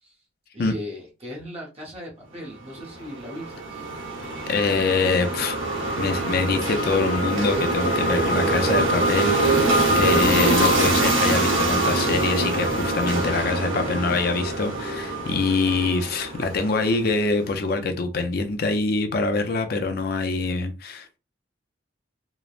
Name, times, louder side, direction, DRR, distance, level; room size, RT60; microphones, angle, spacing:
voice 1, 0.5-3.8, equal, 30° right, 0.7 m, -37 dB
sound 1, 2.8-17.1, right 2 dB, 85° right, 1.0 m, -24 dB
voice 2, 4.5-5.6 6.0-9.7 10.0-21.2, left 3 dB, 50° left, 0.4 m, -24 dB
3.0 x 2.0 x 2.4 m
head